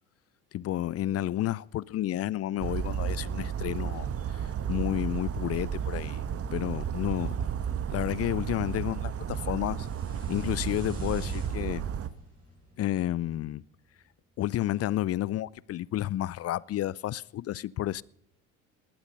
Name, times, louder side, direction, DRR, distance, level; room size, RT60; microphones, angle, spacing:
voice 1, 0.5-6.2 6.5-7.3 7.9-9.9 10.3-11.8 12.8-13.6 14.4-18.0, left 13 dB, 40° left, 0.5 m, -31 dB
Bird vocalization bird call bird song, 2.6-12.1, right 8 dB, 40° right, 1.2 m, -33 dB
sound 1, 9.6-13.7, right 1 dB, 25° right, 7.7 m, -45 dB
19.0 x 12.0 x 5.5 m
hypercardioid pair, 75°, 37 cm